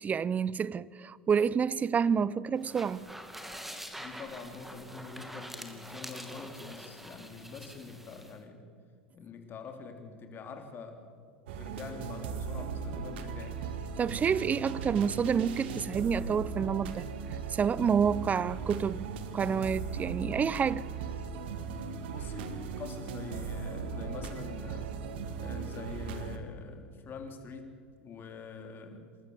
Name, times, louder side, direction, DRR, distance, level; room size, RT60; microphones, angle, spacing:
voice 1, 0.0-3.0 14.0-17.1 17.5-20.9, right 6 dB, 25° right, 0.6 m, -29 dB
sound 1, 2.6-8.4, equal, 5° right, 2.4 m, -45 dB
voice 2, 4.0-8.6 9.1-11.1 11.6-13.6 22.1-24.9 25.4-29.1, left 5 dB, 35° left, 3.3 m, -45 dB
sound 2, 11.5-26.4, right 5 dB, 70° right, 1.8 m, -38 dB
27.5 x 13.5 x 7.9 m
hypercardioid pair, 90°, 6 cm